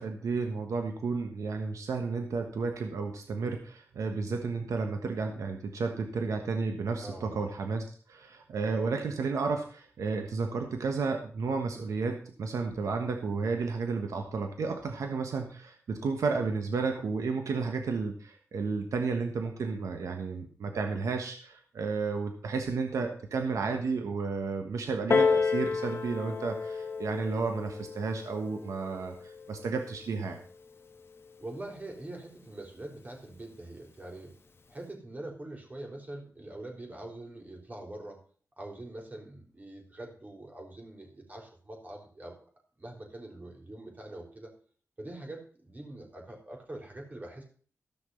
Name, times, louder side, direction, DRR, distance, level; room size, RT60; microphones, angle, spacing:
voice 1, 0.0-30.4, right 4 dB, 90° right, 4 dB, 1.3 m, -32 dB
voice 2, 7.0-7.4 31.4-34.3 34.7-38.2 38.6-42.4 42.8-44.5 45.0-47.4, right 1 dB, 30° right, 1 dB, 4.0 m, -44 dB
Piano, 25.1-30.3 31.1-31.2, left 4 dB, 50° left, 1.3 m, -31 dB
14.0 x 6.0 x 5.6 m, 0.43 s
cardioid pair, 75°, 5 cm